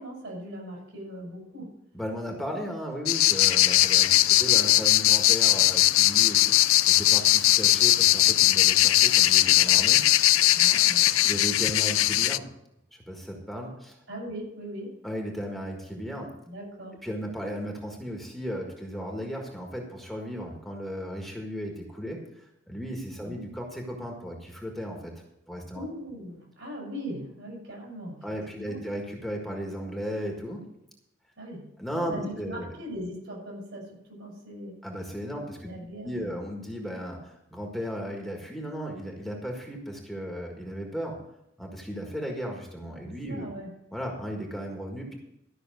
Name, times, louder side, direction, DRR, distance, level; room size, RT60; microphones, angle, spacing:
voice 1, 0.0-1.7 10.5-11.3 14.1-14.9 16.5-17.0 23.2-23.4 25.7-28.2 28.5-28.8 31.4-31.7 32.1-34.7 35.6-36.4 43.0-43.7, equal, 65° right, -2 dB, 6.2 m, -39 dB
voice 2, 1.9-6.5 6.9-10.1 11.2-12.5 13.1-13.9 15.0-16.3 17.0-25.1 25.5-25.8 28.2-30.6 31.8-32.7 34.8-35.7 36.0-41.2 41.6-43.4 43.9-45.2, equal, ahead, 0 dB, 1.6 m, -35 dB
sound 1, 3.1-12.4, left 15 dB, 90° left, 0.4 m, -20 dB
13.0 x 6.2 x 7.7 m, 0.81 s
head